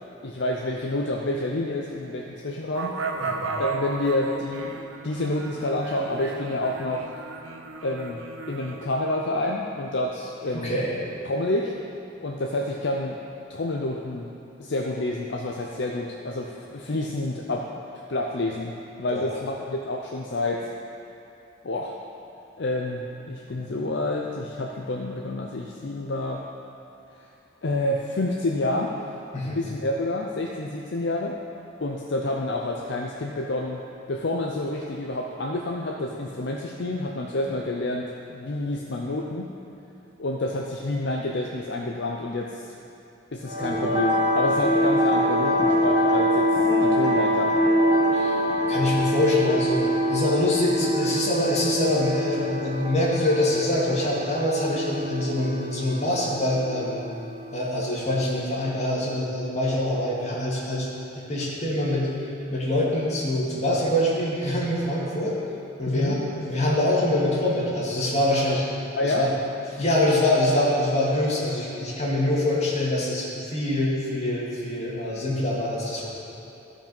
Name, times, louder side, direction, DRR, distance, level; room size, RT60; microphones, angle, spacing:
voice 1, 0.2-2.9 3.5-4.7 5.0-7.1 7.8-10.7 11.3-11.7 12.2-13.2 13.5-14.3 14.6-17.7 18.1-20.7 21.6-22.0 22.6-26.4 27.6-29.0 29.4-31.4 31.8-33.8 34.1-39.5 40.2-42.7 43.3-46.5 46.8-47.5 65.9-66.2 69.0-69.3, left 2 dB, 60° left, 0 dB, 0.6 m, -28 dB
sound 1, 2.7-8.8, right 4 dB, 75° right, 0.7 m, -34 dB
voice 2, 10.5-10.9 19.1-19.3 29.3-29.6 48.1-48.4 48.7-49.8 50.1-57.0 57.5-60.9 61.1-65.4 65.8-68.6 69.0-69.3 69.7-76.1, left 1 dB, 35° left, -6 dB, 2.2 m, -24 dB
sound 2, 43.5-57.6, equal, 15° right, 1.5 m, -24 dB
14.5 x 5.1 x 5.3 m, 2.8 s
head